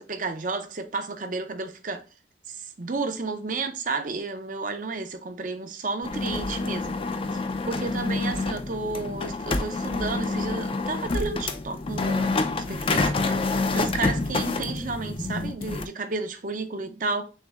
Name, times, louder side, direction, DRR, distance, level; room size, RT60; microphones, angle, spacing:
voice 1, 0.0-2.0 2.5-6.9 7.3-13.1 13.7-17.2, right 3 dB, 45° right, 0.6 m, -32 dB
sound 1, 6.0-15.9, left 3 dB, 30° left, 0.4 m, -27 dB
6.5 x 2.7 x 2.4 m
head